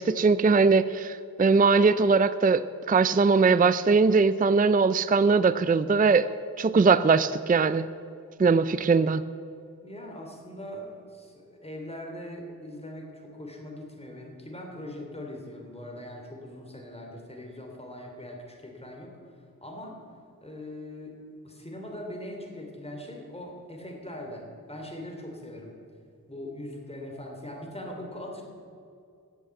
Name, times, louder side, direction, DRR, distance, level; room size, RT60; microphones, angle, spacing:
voice 1, 0.0-2.6 2.9-6.3 6.6-7.9 8.4-9.2, right 4 dB, 25° right, 15 dB, 0.4 m, -21 dB
voice 2, 9.8-19.1 19.6-20.0 20.4-25.8 26.3-28.4, left 1 dB, 15° left, 0 dB, 2.9 m, -41 dB
15.0 x 8.3 x 7.6 m, 2.5 s
wide cardioid pair, 50°, 36 cm